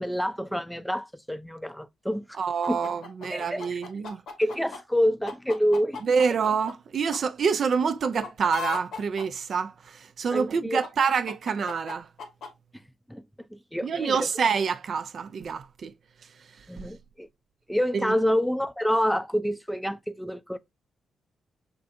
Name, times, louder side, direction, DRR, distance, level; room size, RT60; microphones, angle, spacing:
voice 1, 0.0-2.2 2.7-2.8 3.3-3.8 4.4-6.0 10.3-10.8 12.7-12.8 13.1-13.2 13.5-14.3 16.7-17.3 17.7-20.6, equal, ahead, 0.4 m, -27 dB
voice 2, 2.4-4.2 6.0-12.1 13.8-15.9 16.6-16.9 18.0-18.1, right 6 dB, 55° right, 0.4 m, -27 dB
sound 1, 2.6-4.8 5.3-6.7 7.1-7.2 8.0-9.2 10.8-12.5, left 5 dB, 70° left, 1.0 m, -36 dB
6.7 x 2.5 x 2.4 m
hypercardioid pair, 40°, 0 cm